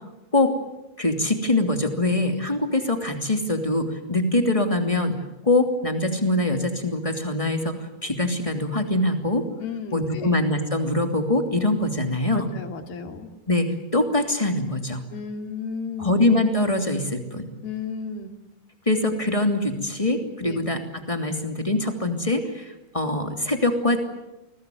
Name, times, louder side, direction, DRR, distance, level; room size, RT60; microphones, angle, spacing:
voice 1, 1.0-5.2 5.4-7.7 8.0-9.4 9.9-12.5 13.5-15.0 16.0-17.5 18.9-24.0, left 2 dB, 10° left, 5 dB, 2.2 m, -23 dB
voice 2, 9.6-10.4 12.3-13.3 15.1-16.2 17.6-18.3 20.4-20.7, left 5 dB, 80° left, 5 dB, 4.5 m, -33 dB
29.0 x 20.5 x 9.3 m, 0.98 s
omnidirectional pair, 4.3 m